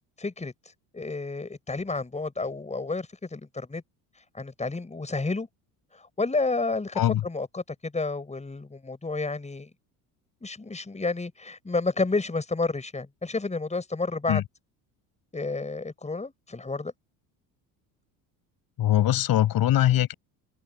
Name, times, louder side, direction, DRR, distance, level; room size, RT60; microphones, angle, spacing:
voice 1, 0.2-0.5 0.9-3.8 4.3-5.5 5.9-9.7 10.4-14.4 15.3-16.9, left 3 dB, 15° left, 6.3 m, -30 dB
voice 2, 18.8-20.1, left 12 dB, 55° left, 7.4 m, -22 dB
supercardioid pair, 80°, 42 cm